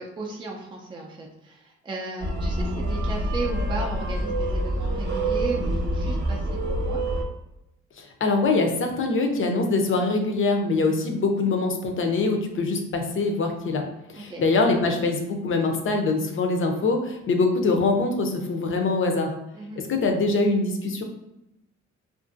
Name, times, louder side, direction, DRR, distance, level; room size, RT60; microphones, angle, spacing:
voice 1, 0.0-7.1 14.1-14.4 19.5-19.8, right 2 dB, 15° right, 0 dB, 0.4 m, -35 dB
sound 1, 2.2-7.2, right 1 dB, 35° right, 0.8 m, -26 dB
voice 2, 8.0-13.8 14.1-19.4 19.9-21.0, left 3 dB, 45° left, 4 dB, 0.6 m, -23 dB
2.5 x 2.5 x 2.5 m, 0.88 s
cardioid pair, 90°, 30 cm